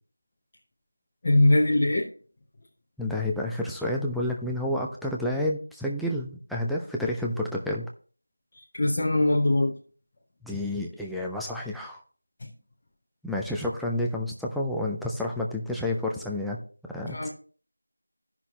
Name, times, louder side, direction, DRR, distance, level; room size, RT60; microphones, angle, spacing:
voice 1, 1.2-2.1 8.7-9.7 17.1-17.3, left 1 dB, 20° left, -4 dB, 0.7 m, -21 dB
voice 2, 3.0-7.9 10.4-12.0 13.2-16.6 16.9-17.3, left 1 dB, ahead, -3 dB, 0.3 m, -30 dB
13.5 x 6.0 x 2.9 m, 0.42 s
figure-of-eight pair, 175°, 0 cm